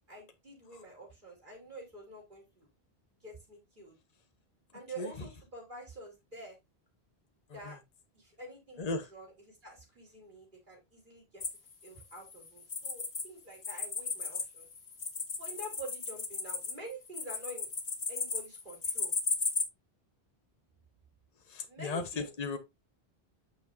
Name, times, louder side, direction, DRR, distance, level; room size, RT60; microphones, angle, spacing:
voice 1, 0.1-2.7 3.2-3.9 4.7-6.6 7.5-7.8 8.1-11.4 11.8-14.7 15.4-17.7 18.1-19.1 21.7-22.3, right 1 dB, 50° right, 4.8 m, -47 dB
voice 2, 8.8-9.1 21.4-22.6, left 3 dB, 40° left, 1.3 m, -37 dB
sound 1, 11.4-13.3 13.5-19.6, left 4 dB, 90° left, 2.0 m, -35 dB
9.1 x 7.0 x 2.7 m
omnidirectional pair, 1.1 m